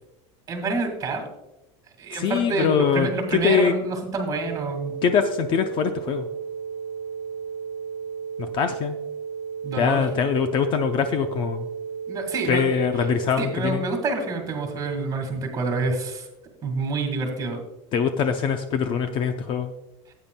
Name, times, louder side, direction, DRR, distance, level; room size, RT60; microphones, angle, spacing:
voice 1, 0.5-1.3 2.0-4.9 9.6-10.0 12.1-12.7 13.4-16.3 16.6-17.6, right 3 dB, 25° right, 4 dB, 1.9 m, -27 dB
voice 2, 2.1-3.7 5.0-6.3 8.4-9.0 9.7-11.7 12.5-13.8 17.9-19.7, left 7 dB, 35° left, 7 dB, 0.6 m, -23 dB
sound 1, 4.3-13.3, right 6 dB, 60° right, 1.3 m, -34 dB
15.0 x 8.9 x 2.2 m, 0.95 s
supercardioid pair, 155°, 15 cm